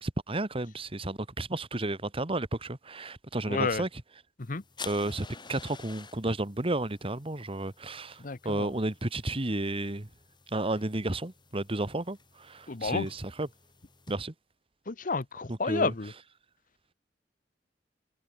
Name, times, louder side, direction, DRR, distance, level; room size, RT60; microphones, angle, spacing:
voice 1, 0.0-3.9 4.8-8.2 8.4-10.1 10.5-12.2 12.5-13.5 14.1-14.3 15.5-15.9, right 2 dB, 30° right, 1.6 m, -32 dB
voice 2, 3.5-3.9 4.5-4.6 8.2-8.7 12.7-13.1 14.9-16.1, left 4 dB, 50° left, 1.0 m, -30 dB
sound 1, 4.4-14.1, left 5 dB, 25° left, 5.3 m, -50 dB
head